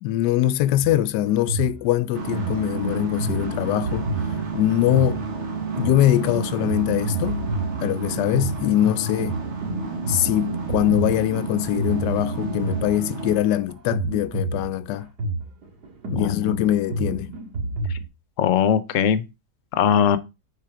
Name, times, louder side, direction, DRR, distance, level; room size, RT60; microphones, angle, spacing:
voice 1, 0.0-5.2 5.8-7.4 7.8-9.4 10.1-15.1 16.1-17.3, left 13 dB, 90° left, 1.2 m, -23 dB
sound 1, 0.8-18.1, right 2 dB, 75° right, 2.4 m, -30 dB
sound 2, 2.1-13.4, right 4 dB, 45° right, 1.6 m, -31 dB
voice 2, 16.2-16.6 17.9-18.0 18.4-19.2 19.7-20.2, left 8 dB, 60° left, 1.0 m, -20 dB
9.1 x 4.0 x 4.9 m
omnidirectional pair, 1.8 m